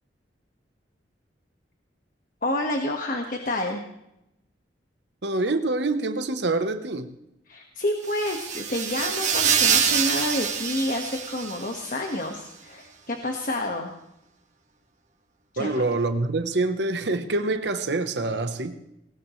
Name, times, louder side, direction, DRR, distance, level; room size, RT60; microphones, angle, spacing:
voice 1, 2.4-3.8 7.5-13.9 15.5-15.7, left 1 dB, 50° left, 1.6 m, -29 dB
voice 2, 5.2-7.1 15.6-18.8, right 2 dB, 70° right, 1.0 m, -26 dB
sound 1, 8.1-11.9, right 7 dB, 45° right, 2.0 m, -25 dB
19.0 x 19.0 x 3.2 m
head